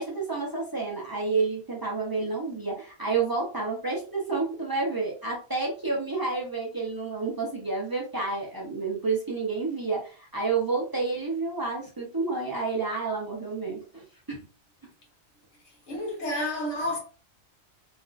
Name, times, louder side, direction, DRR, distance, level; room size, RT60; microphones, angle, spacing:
voice 1, 0.0-14.4, right 4 dB, 35° right, 0.3 m, -30 dB
voice 2, 15.9-17.0, left 1 dB, 65° left, 1.5 m, -30 dB
3.3 x 2.4 x 2.4 m
omnidirectional pair, 1.4 m